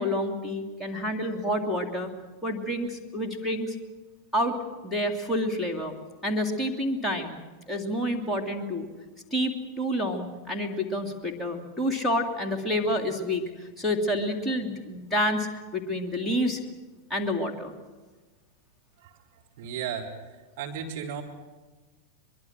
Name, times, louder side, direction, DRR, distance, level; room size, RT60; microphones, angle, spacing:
voice 1, 0.0-2.1 2.4-3.7 4.3-4.6 4.8-6.0 6.2-7.4 7.7-8.9 9.3-16.6 17.1-17.7, equal, 5° left, 1 dB, 3.1 m, -28 dB
voice 2, 19.6-20.3 20.6-21.2, right 8 dB, 50° right, 0 dB, 4.1 m, -34 dB
23.5 x 22.5 x 7.7 m, 1.3 s
figure-of-eight pair, 90°, 0 cm